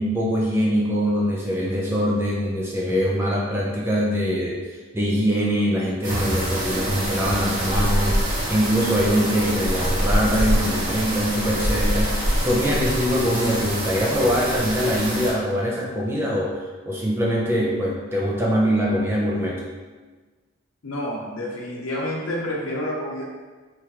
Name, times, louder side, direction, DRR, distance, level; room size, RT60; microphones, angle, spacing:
voice 1, 0.0-4.6 4.9-19.6, equal, 10° right, -4 dB, 0.4 m, -23 dB
sound 1, 6.0-15.3, right 1 dB, 40° right, 0.9 m, -25 dB
voice 2, 20.8-23.2, left 1 dB, 85° left, -4 dB, 0.7 m, -29 dB
3.6 x 3.1 x 2.8 m, 1.4 s
head